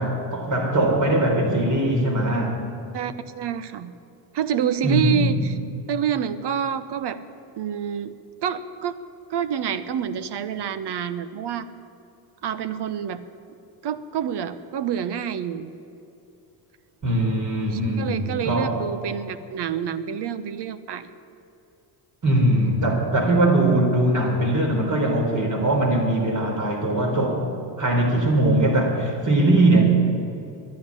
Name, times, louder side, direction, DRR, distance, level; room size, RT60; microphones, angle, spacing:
voice 1, 0.0-2.6 4.8-5.4 17.0-18.8 22.2-27.4 27.8-29.8, right 1 dB, 35° right, 1 dB, 4.0 m, -21 dB
voice 2, 2.9-3.9 4.3-5.6 5.9-7.2 7.5-8.1 8.4-9.0 9.3-11.7 12.4-13.2 13.8-15.7 17.7-21.1, right 8 dB, 55° right, 13 dB, 1.0 m, -27 dB
12.0 x 10.5 x 9.9 m, 2.8 s
supercardioid pair, 90°, 50 cm